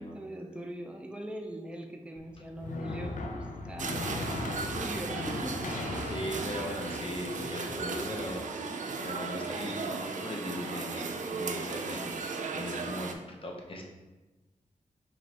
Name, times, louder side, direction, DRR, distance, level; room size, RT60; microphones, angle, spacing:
voice 1, 0.0-6.5, right 1 dB, 10° right, 3 dB, 0.5 m, -42 dB
sound 1, 2.2-8.3, left 2 dB, 90° left, 0.5 m, -39 dB
sound 2, 3.8-13.1, right 4 dB, 75° right, 0.4 m, -36 dB
voice 2, 6.0-13.8, left 1 dB, 45° left, 1 dB, 0.8 m, -39 dB
4.9 x 3.1 x 2.9 m, 1.1 s
wide cardioid pair, 75°, 13 cm